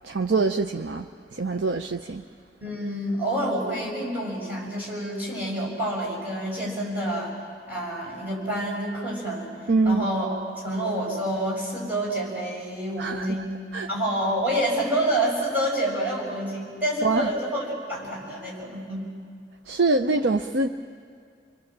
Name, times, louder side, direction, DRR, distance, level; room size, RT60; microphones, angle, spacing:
voice 1, 0.0-2.2 9.7-10.1 13.0-13.5 13.7-13.9 17.0-17.3 19.7-20.7, right 3 dB, 90° right, 6 dB, 0.7 m, -24 dB
voice 2, 2.6-7.4 7.7-13.5 13.9-19.1, right 1 dB, 10° right, -4 dB, 6.9 m, -28 dB
29.5 x 22.5 x 7.5 m, 2.2 s
head